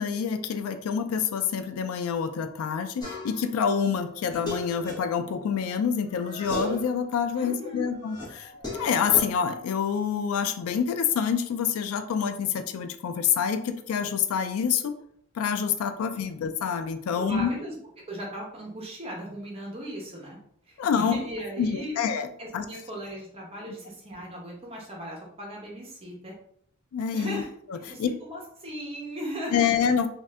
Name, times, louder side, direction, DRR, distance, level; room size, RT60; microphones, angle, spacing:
voice 1, 0.0-8.5 8.8-14.9 15.4-17.5 20.8-21.2 21.6-22.3 22.5-22.6 26.9-27.4 27.7-28.1 29.5-30.1, left 7 dB, 85° left, 9 dB, 0.3 m, -27 dB
sound 1, 3.0-3.5 3.9-5.8 6.1-7.0 7.4-9.2, left 2 dB, 20° left, 1.0 m, -36 dB
voice 2, 7.4-7.9 17.2-17.8 18.1-20.4 20.7-22.0 22.4-26.3 27.1-29.9, equal, 30° right, -2 dB, 0.8 m, -37 dB
2.5 x 2.4 x 3.2 m, 0.66 s
head